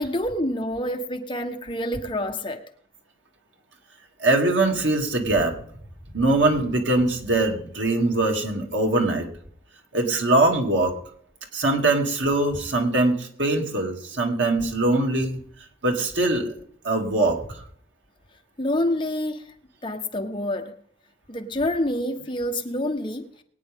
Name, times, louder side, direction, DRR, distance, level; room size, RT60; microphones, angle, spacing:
voice 1, 0.0-2.6 18.6-19.5 19.8-20.7 21.3-23.2, left 1 dB, 25° left, 1.2 m, -27 dB
voice 2, 4.2-5.6 6.1-9.3 9.9-10.9 11.5-15.4 15.8-16.5 16.8-17.4, right 2 dB, 80° right, 2.7 m, -22 dB
21.5 x 9.5 x 3.7 m
head